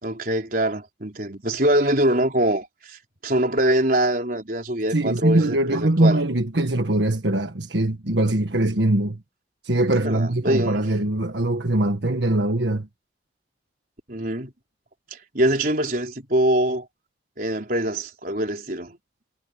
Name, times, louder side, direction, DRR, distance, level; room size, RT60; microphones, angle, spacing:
voice 1, 0.0-6.2 9.9-10.8 14.1-14.5 15.1-16.9 17.4-19.0, right 1 dB, 50° right, 4.3 m, -23 dB
voice 2, 4.9-9.2 9.6-12.9, right 1 dB, 85° right, 1.6 m, -22 dB
head